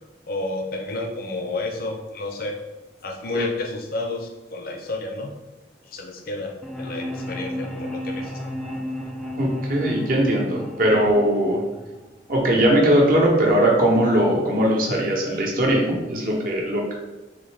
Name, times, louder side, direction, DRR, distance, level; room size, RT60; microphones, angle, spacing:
voice 1, 0.3-2.6 3.0-5.3 5.9-6.5 6.8-8.3, left 2 dB, 50° left, 2 dB, 0.6 m, -30 dB
sound 1, 6.6-12.6, left 1 dB, ahead, 0.4 m, -33 dB
voice 2, 9.4-11.6 12.3-16.9, right 1 dB, 50° right, -2 dB, 0.9 m, -20 dB
4.0 x 3.1 x 3.3 m, 1.1 s
head